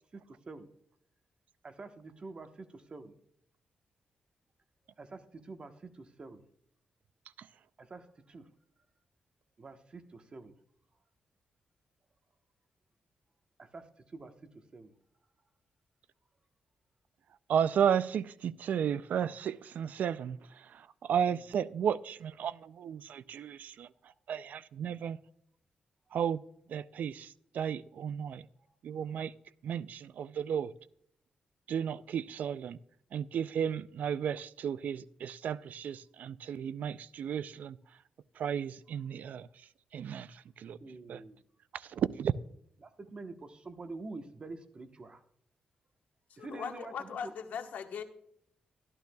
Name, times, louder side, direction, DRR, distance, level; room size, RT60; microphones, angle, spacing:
voice 1, 1.6-3.1 5.0-6.4 7.8-8.4 9.6-10.5 13.6-14.3 14.7-14.9 21.3-21.4 24.8-25.0 40.8-41.4 42.8-45.2 46.4-47.3, right 3 dB, 40° right, 7 dB, 1.1 m, -47 dB
voice 2, 17.5-23.9 24.3-25.2 26.1-26.4 26.7-28.4 28.8-29.3 29.6-30.7 31.7-32.8 33.1-37.8 38.4-39.5 39.9-40.8 41.1-41.2 41.7-42.3, right 8 dB, 75° right, 17 dB, 0.4 m, -33 dB
voice 3, 46.3-48.0, left 7 dB, 80° left, 6 dB, 1.2 m, -39 dB
13.0 x 12.0 x 2.3 m, 0.69 s
cardioid pair, 105°, 3 cm